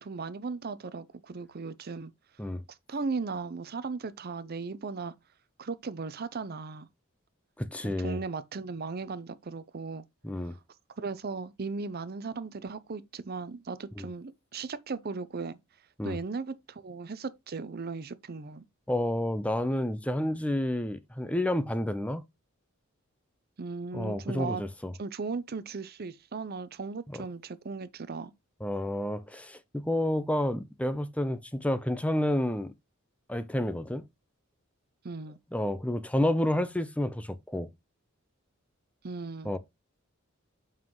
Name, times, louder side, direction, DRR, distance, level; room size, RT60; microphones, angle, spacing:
voice 1, 0.0-2.1 2.7-5.1 5.6-6.9 7.8-10.0 11.0-15.6 16.0-18.6 23.6-24.6 25.0-28.3 35.0-35.4 39.0-39.6, right 4 dB, 45° right, 0.6 m, -37 dB
voice 2, 7.6-8.2 10.2-10.5 14.0-14.1 16.0-16.2 18.9-22.2 23.9-24.9 27.1-27.2 28.6-32.7 33.3-34.0 35.5-37.7 39.4-39.6, left 1 dB, 5° left, 0.6 m, -30 dB
7.4 x 5.6 x 3.0 m
head